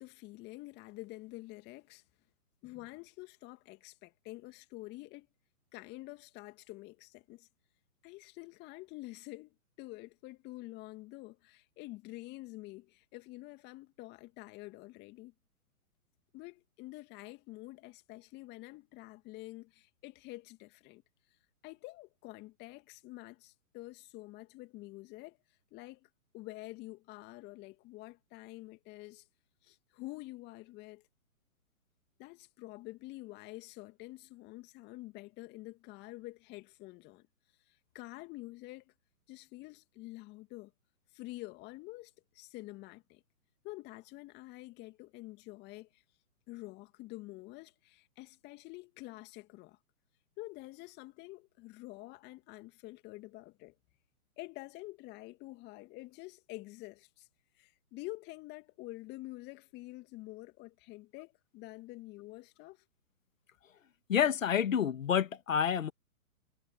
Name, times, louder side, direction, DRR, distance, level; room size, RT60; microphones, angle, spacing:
voice 1, 0.0-2.0 2.6-5.3 5.7-7.5 8.0-15.3 16.3-21.0 21.6-25.4 25.7-26.1 26.3-29.3 29.6-31.0 32.2-37.3 37.7-38.9 39.3-40.7 41.1-43.2 43.6-46.0 46.5-49.8 50.4-53.8 54.4-57.3 57.6-62.8, left 20 dB, 25° left, 2.3 m, -48 dB
voice 2, 64.1-65.9, left 8 dB, 60° left, 2.6 m, -28 dB
figure-of-eight pair, 130°, 45 cm